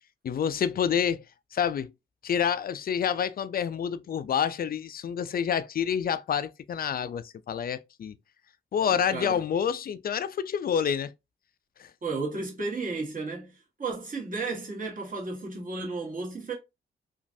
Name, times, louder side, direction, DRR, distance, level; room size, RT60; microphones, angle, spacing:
voice 1, 0.2-1.2 1.5-1.9 2.2-8.2 8.7-11.1 11.8-11.9, left 8 dB, 45° left, 0.4 m, -28 dB
voice 2, 8.9-9.4 12.0-16.5, right 3 dB, 40° right, 1.6 m, -33 dB
3.0 x 2.5 x 2.6 m
cardioid pair, 60°, 21 cm